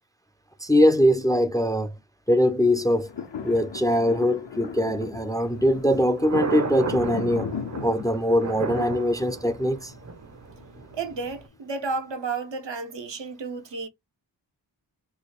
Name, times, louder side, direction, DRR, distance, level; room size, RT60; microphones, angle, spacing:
voice 1, 0.6-1.9 2.3-3.1 3.4-7.5 7.8-9.9, equal, 10° left, 0.4 m, -22 dB
sound 1, 2.7-11.0 11.5-11.6, left 5 dB, 75° left, 0.8 m, -38 dB
Thunder, 5.4-11.5, right 5 dB, 40° right, 0.6 m, -34 dB
voice 2, 10.9-13.9, right 4 dB, 80° right, 0.7 m, -32 dB
3.1 x 2.2 x 4.3 m
wide cardioid pair, 50°, 43 cm